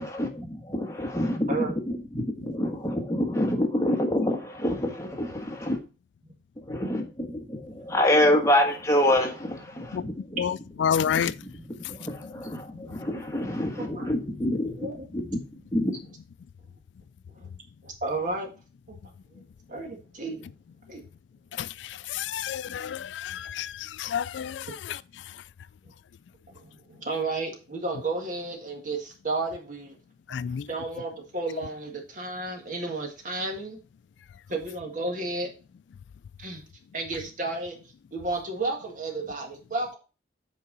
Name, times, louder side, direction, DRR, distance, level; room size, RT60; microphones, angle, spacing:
voice 1, 0.0-5.7 6.7-10.4 11.1-11.6 11.9-15.4 15.7-16.0, left 1 dB, 15° left, 1.4 m, -27 dB
voice 2, 7.5-7.9 13.8-14.1 14.8-15.1 17.3-17.5 17.8-18.5 18.9-19.0 19.3-19.4 19.7-20.5 20.9-21.0 26.5-30.0 30.7-33.8 34.5-35.5 36.4-36.6 36.9-37.8 38.1-40.0, right 2 dB, 45° right, 1.8 m, -32 dB
voice 3, 10.8-11.3 22.1-23.7 24.0-24.6 30.3-30.6, left 8 dB, 85° left, 0.3 m, -28 dB
8.4 x 4.7 x 3.9 m
head